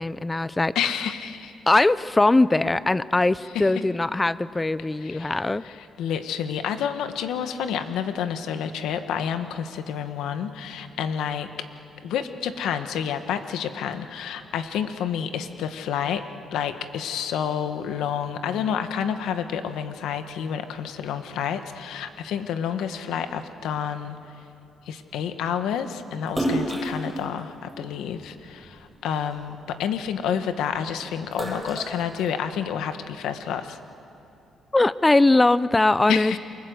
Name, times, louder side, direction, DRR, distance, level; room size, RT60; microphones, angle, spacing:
voice 1, 0.0-0.7 1.7-5.6 34.7-36.4, left 2 dB, 15° left, 17 dB, 0.6 m, -21 dB
voice 2, 0.7-1.5 3.5-3.7 5.0-11.5 12.0-16.2 16.5-24.2 24.8-33.8 36.1-36.4, left 8 dB, 85° left, 9 dB, 1.5 m, -29 dB
Splash splatter, 26.3-28.8 29.3-30.7 31.1-32.8, right 1 dB, 10° right, 7.7 m, -31 dB
28.5 x 23.0 x 8.0 m, 2.7 s
cardioid pair, 90°, 0 cm